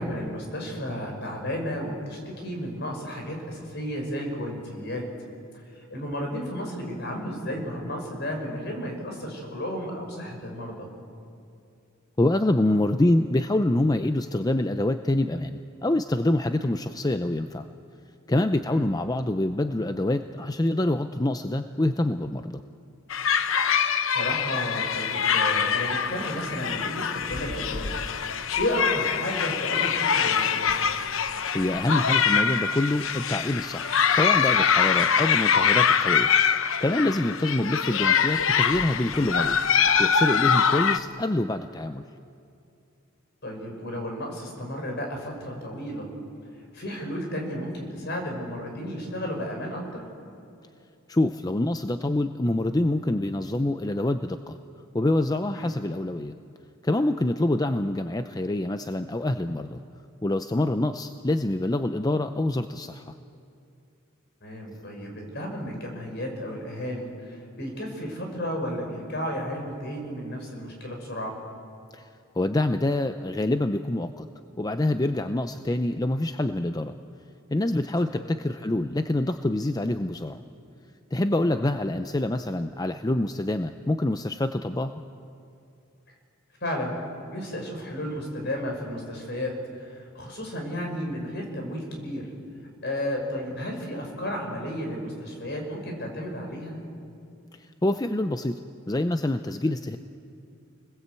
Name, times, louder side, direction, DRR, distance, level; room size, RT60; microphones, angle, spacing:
voice 1, 0.0-5.1 5.7-10.9 16.6-16.7 18.7-18.9 24.1-27.9 28.3-30.7 43.4-46.1 46.7-50.0 55.6-55.7 64.4-71.4 78.1-78.3 81.5-81.7 86.6-87.0 87.3-92.3 92.8-96.8 99.7-99.8, equal, 55° left, 2 dB, 5.9 m, -33 dB
voice 2, 12.2-17.7 18.3-22.6 31.5-36.3 36.8-39.6 40.0-42.0 51.1-54.6 54.9-56.3 56.8-59.8 60.2-63.1 71.9-72.1 72.4-74.3 74.6-76.9 77.5-80.4 81.1-85.0 97.6-98.6 98.9-100.0, left 1 dB, 20° left, 9 dB, 0.5 m, -26 dB
sound 1, 23.1-41.0, left 7 dB, 75° left, 0.9 m, -24 dB
28.5 x 21.0 x 8.3 m, 2.5 s
head